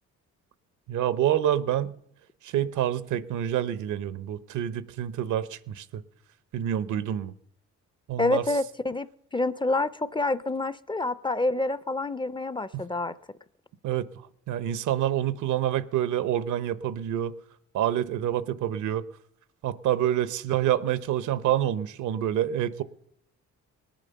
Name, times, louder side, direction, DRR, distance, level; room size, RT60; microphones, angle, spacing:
voice 1, 0.9-2.0 2.4-6.0 6.5-7.3 8.1-8.4 12.7-12.8 13.8-14.1 14.5-17.3 17.7-19.1 19.6-22.8, right 11 dB, 80° right, 0.9 m, -27 dB
voice 2, 8.2-13.1, left 2 dB, 15° left, 0.5 m, -27 dB
19.0 x 9.1 x 6.8 m
cardioid pair, 90°, 30 cm